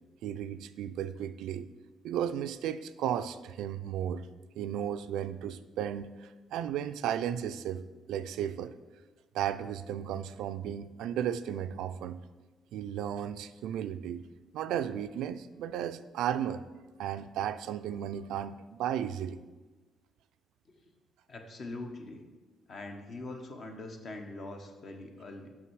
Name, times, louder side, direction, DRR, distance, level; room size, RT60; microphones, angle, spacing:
voice 1, 0.2-1.7 2.0-4.3 4.6-8.8 9.3-12.2 12.7-14.2 14.5-16.6 17.0-19.4, right 10 dB, 85° right, 12 dB, 0.3 m, -34 dB
voice 2, 21.3-22.2 22.7-25.5, left 2 dB, 55° left, 4 dB, 1.0 m, -42 dB
5.9 x 5.9 x 4.7 m, 1.3 s
cardioid pair, 90°, 0 cm